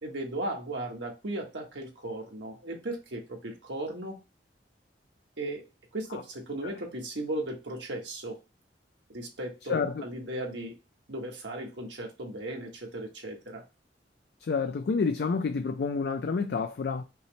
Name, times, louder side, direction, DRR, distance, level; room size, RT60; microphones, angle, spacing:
voice 1, 0.0-4.2 5.4-5.7 5.9-8.4 9.1-10.8 11.1-13.6, right 1 dB, 85° right, 1.3 m, -36 dB
voice 2, 9.7-10.0 14.4-17.0, left 5 dB, 60° left, 0.3 m, -29 dB
5.3 x 2.0 x 3.1 m
head